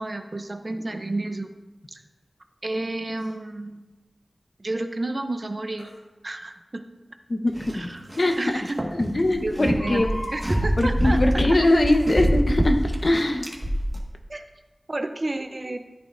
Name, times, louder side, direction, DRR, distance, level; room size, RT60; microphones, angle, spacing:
voice 1, 0.0-1.5 1.9-2.0 2.6-3.9 4.6-5.9 6.2-6.8 7.7-8.0 8.4-8.8 9.4-10.0 10.3-11.2 14.3-14.4 14.9-15.8, right 2 dB, 45° right, 7 dB, 0.7 m, -31 dB
Crying sobbing, 3.2-3.3 5.8-6.0 7.6-7.7 8.2-8.3 8.5-8.6 9.6-10.7 11.7-12.0 12.6-12.7, left 1 dB, 70° left, 2.0 m, -38 dB
voice 2, 7.3-8.4 8.9-10.2 10.8-13.5, left 1 dB, 50° left, 4 dB, 1.1 m, -22 dB
sound 1, 7.6-8.3 8.6-14.0, right 1 dB, 25° right, 1.7 m, -25 dB
14.0 x 8.9 x 2.7 m, 1.1 s
wide cardioid pair, 50°, 0 cm